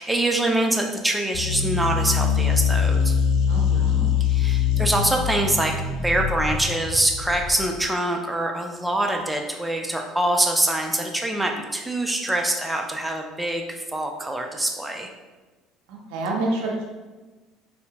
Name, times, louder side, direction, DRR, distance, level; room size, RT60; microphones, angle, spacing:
voice 1, 0.0-3.1 4.2-15.1, right 1 dB, 10° right, 2 dB, 0.4 m, -24 dB
sound 1, 1.3-7.9, left 7 dB, 65° left, 0.3 m, -23 dB
voice 2, 3.5-4.1 15.9-16.7, right 2 dB, 75° right, -1 dB, 0.5 m, -28 dB
2.7 x 2.1 x 2.7 m, 1.2 s
hypercardioid pair, 65°, 0 cm